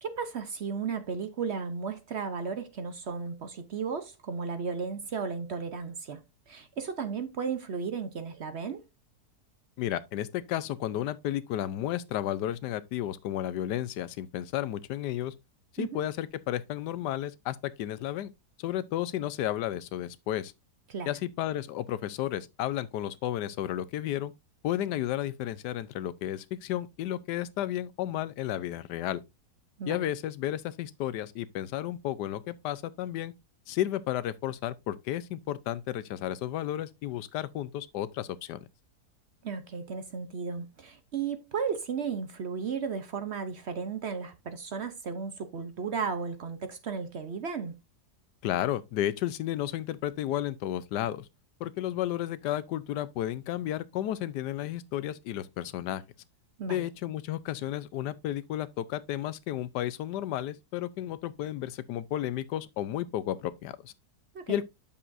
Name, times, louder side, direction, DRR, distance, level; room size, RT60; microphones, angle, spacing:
voice 1, 0.0-6.2 6.5-8.8 15.8-16.0 20.9-21.1 29.8-30.0 39.4-47.8 56.6-56.8 64.3-64.6, right 5 dB, 55° right, 0.8 m, -34 dB
voice 2, 9.8-15.3 15.7-18.3 18.6-20.5 21.1-24.3 24.6-29.2 29.9-33.3 33.7-38.6 48.4-51.3 51.6-56.0 56.7-63.9 64.5-64.6, left 12 dB, 90° left, 1.2 m, -32 dB
8.5 x 7.0 x 2.6 m
omnidirectional pair, 1.7 m